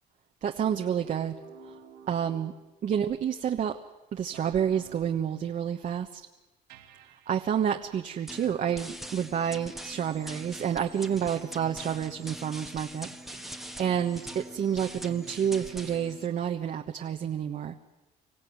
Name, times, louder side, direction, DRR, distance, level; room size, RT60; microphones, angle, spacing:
voice 1, 0.4-1.3 2.1-2.5 2.8-3.7 4.1-6.2 7.3-17.8, right 8 dB, 50° right, 4 dB, 1.3 m, -29 dB
sound 1, 0.6-3.0 4.3-5.3 6.7-7.3 8.4-8.9 9.4-9.8 10.3-10.6 11.2-16.2, right 6 dB, 85° right, 2.9 m, -52 dB
sound 2, 8.3-16.3, equal, ahead, 1.4 m, -43 dB
25.5 x 16.0 x 9.5 m, 1.0 s
cardioid pair, 110°, 17 cm